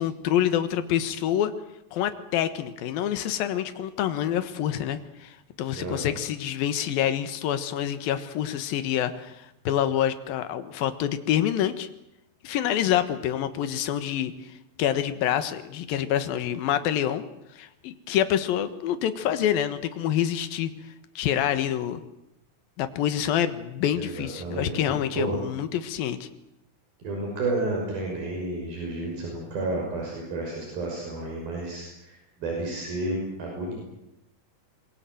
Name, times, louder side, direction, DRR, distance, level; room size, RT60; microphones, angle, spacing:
voice 1, 0.0-1.5 1.9-11.9 12.4-14.3 14.8-17.2 17.6-20.7 21.2-22.0 22.8-26.3, left 10 dB, 80° left, 10 dB, 3.2 m, -27 dB
voice 2, 5.8-6.2 23.9-25.4 27.0-33.7, right 2 dB, 80° right, -1 dB, 7.8 m, -31 dB
26.0 x 22.5 x 7.8 m, 0.85 s
omnidirectional pair, 4.2 m